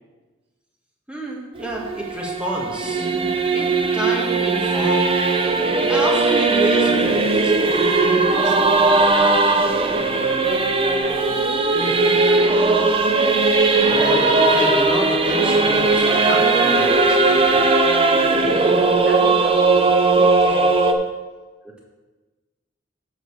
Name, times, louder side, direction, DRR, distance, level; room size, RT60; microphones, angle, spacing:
voice 1, 1.1-3.1 3.5-5.2 5.9-7.7 13.8-17.7 21.6-21.8, right 1 dB, 5° right, -2 dB, 1.4 m, -29 dB
Singing / Musical instrument, 1.6-20.9, right 3 dB, 30° right, 0.6 m, -18 dB
voice 2, 8.2-11.7 17.8-20.8, right 1 dB, 60° right, 1 dB, 1.4 m, -33 dB
7.7 x 4.9 x 6.4 m, 1.3 s
head